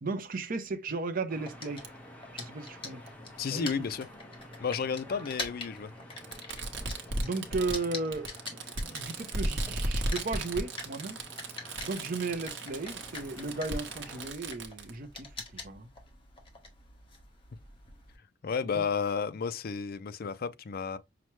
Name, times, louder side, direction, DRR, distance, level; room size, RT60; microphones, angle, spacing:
voice 1, 0.0-1.9 2.3-3.0 3.4-3.9 7.2-11.2 11.8-15.9 18.7-18.9, right 3 dB, 50° right, 0.6 m, -35 dB
sound 1, 1.3-14.3, equal, 10° left, 1.0 m, -50 dB
sound 2, 1.4-9.6 9.9-18.2, left 3 dB, 30° left, 1.2 m, -44 dB
Fireworks, 1.8-1.9 3.1-3.2 4.4-4.5 6.2-14.9, right 2 dB, 90° right, 0.9 m, -36 dB
voice 2, 3.4-4.1 4.6-5.9 18.4-21.0, left 6 dB, 55° left, 0.4 m, -32 dB
5.8 x 2.1 x 3.1 m
head